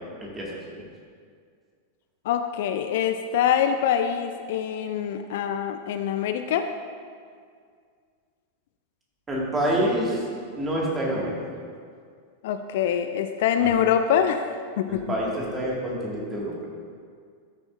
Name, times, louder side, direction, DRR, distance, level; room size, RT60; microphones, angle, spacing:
voice 1, 0.2-0.5 9.3-10.2 10.5-11.4 13.6-13.7 14.9-16.7, right 1 dB, 20° right, -4 dB, 2.1 m, -27 dB
voice 2, 2.3-6.7 12.4-14.5 14.8-15.0, left 9 dB, 55° left, 8 dB, 0.4 m, -24 dB
12.5 x 6.9 x 2.6 m, 2.1 s
figure-of-eight pair, 90°, 0 cm